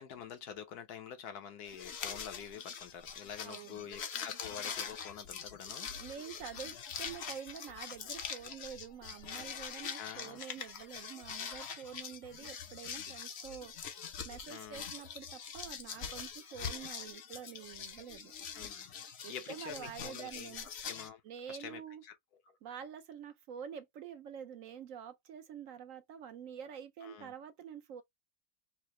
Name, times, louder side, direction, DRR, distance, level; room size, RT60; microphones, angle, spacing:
voice 1, 0.0-5.9 10.0-10.4 14.5-14.9 18.5-18.9 19.3-21.2 21.5-22.2 27.0-27.3, left 8 dB, 80° left, 1.3 m, -47 dB
sound 1, 1.7-21.1, left 7 dB, 55° left, 0.8 m, -44 dB
voice 2, 3.4-3.9 5.9-13.7 14.2-18.3 19.2-20.7 21.2-22.0 22.6-28.0, right 8 dB, 65° right, 0.9 m, -47 dB
4.7 x 2.0 x 3.0 m
omnidirectional pair, 1.7 m